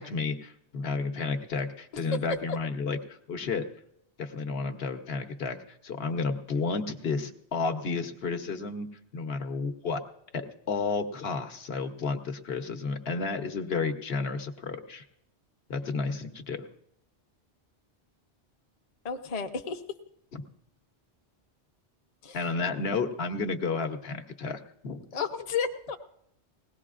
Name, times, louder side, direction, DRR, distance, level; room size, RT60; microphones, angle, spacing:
voice 1, 0.0-3.7 4.2-5.6 5.8-8.9 9.1-10.0 10.3-15.0 15.7-16.6 20.3-20.4 22.3-25.0, left 4 dB, 65° left, 6 dB, 1.2 m, -32 dB
voice 2, 19.0-19.8 22.2-22.4 25.1-26.0, left 6 dB, 40° left, 6 dB, 0.8 m, -32 dB
20.5 x 17.5 x 2.5 m, 0.75 s
omnidirectional pair, 1.1 m